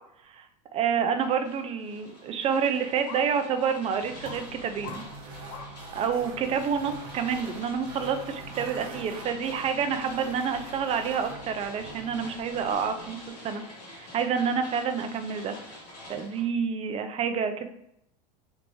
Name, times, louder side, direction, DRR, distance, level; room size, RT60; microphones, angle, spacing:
voice 1, 0.7-5.0 5.9-13.2 13.4-13.6 13.9-15.5 16.1-17.7, right 7 dB, 30° right, 8 dB, 0.5 m, -28 dB
sound 1, 1.2-16.4, left 1 dB, 80° left, 1.4 m, -47 dB
sound 2, 1.2-1.3 2.0-2.1 3.1-3.2 3.6-3.8 4.2-4.4 4.8-5.0 5.5-5.7 6.2-6.3, left 8 dB, 55° left, 0.5 m, -41 dB
sound 3, 3.9-13.3, right 3 dB, 70° right, 0.8 m, -44 dB
3.4 x 2.5 x 3.1 m, 0.75 s
hypercardioid pair, 95°, 21 cm